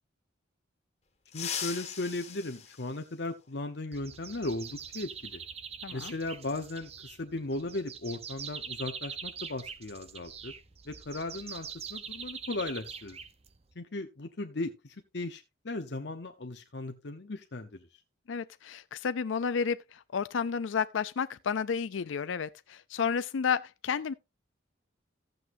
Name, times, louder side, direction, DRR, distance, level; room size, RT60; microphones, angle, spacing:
voice 1, 1.3-5.4 5.9-10.5 10.9-13.2 13.8-17.8, left 2 dB, 60° left, 0.9 m, -37 dB
sound 1, 1.3-3.7 5.3-5.4 6.6-6.7 8.4-8.5 8.9-9.1 9.6-11.8 12.0-12.3 12.7-13.1, left 8 dB, 35° left, 2.0 m, -42 dB
sound 2, 3.9-13.7, right 7 dB, 30° right, 0.7 m, -43 dB
voice 2, 5.8-6.1 18.3-24.1, left 6 dB, 75° left, 0.4 m, -31 dB
14.5 x 7.9 x 2.6 m
head